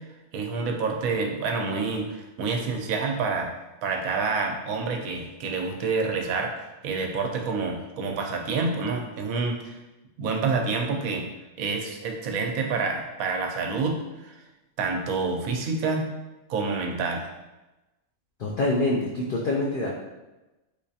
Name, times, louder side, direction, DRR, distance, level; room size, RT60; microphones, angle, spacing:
voice 1, 0.3-3.5 3.8-6.5 6.8-9.8 10.2-11.2 11.6-14.3 14.8-16.1 16.5-17.3, right 4 dB, 85° right, 2 dB, 1.0 m, -28 dB
voice 2, 18.4-19.9, left 2 dB, 90° left, -3 dB, 0.4 m, -25 dB
3.4 x 3.1 x 2.7 m, 1.0 s
omnidirectional pair, 1.5 m